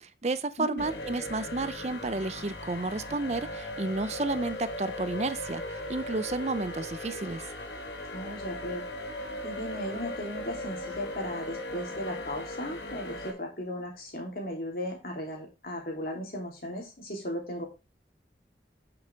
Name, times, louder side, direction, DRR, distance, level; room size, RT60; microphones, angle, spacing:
voice 1, 0.0-7.5, right 3 dB, 40° right, 0.5 m, -32 dB
sound 1, 0.8-13.3, left 1 dB, 80° left, 1.9 m, -38 dB
voice 2, 8.1-8.9 9.4-17.6, left 1 dB, 55° left, 3.3 m, -36 dB
8.8 x 6.9 x 3.5 m
head